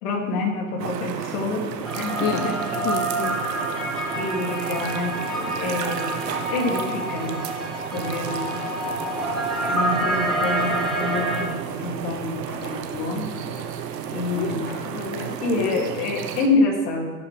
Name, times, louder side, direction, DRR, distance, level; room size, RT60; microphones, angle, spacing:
voice 1, 0.0-1.6 1.9-2.6 4.2-6.2 6.5-7.4 7.9-8.5 9.6-12.4 12.9-13.3 14.1-14.8 15.4-17.1, left 2 dB, 70° left, 0 dB, 2.9 m, -27 dB
sound 1, 0.8-16.5, right 8 dB, 85° right, 1.2 m, -32 dB
sound 2, 1.8-11.5, right 1 dB, ahead, 2.4 m, -28 dB
voice 2, 2.8-3.4 14.3-16.2, left 7 dB, 40° left, 6 dB, 0.8 m, -30 dB
sound 3, 9.1-15.0, equal, 20° left, 2.4 m, -44 dB
17.5 x 7.1 x 3.4 m, 1.3 s
hypercardioid pair, 100°, 48 cm